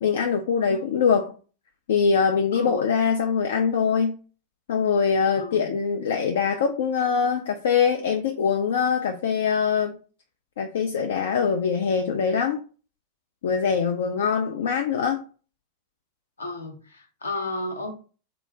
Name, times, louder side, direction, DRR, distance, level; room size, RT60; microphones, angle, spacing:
voice 1, 0.0-1.3 1.9-4.2 4.7-10.0 10.6-12.6 13.4-15.2, left 6 dB, 60° left, 0.4 m, -23 dB
voice 2, 2.5-2.8 5.3-5.7 16.4-17.9, left 2 dB, 75° left, 0.7 m, -33 dB
3.7 x 2.4 x 3.2 m
figure-of-eight pair, 90°, 0 cm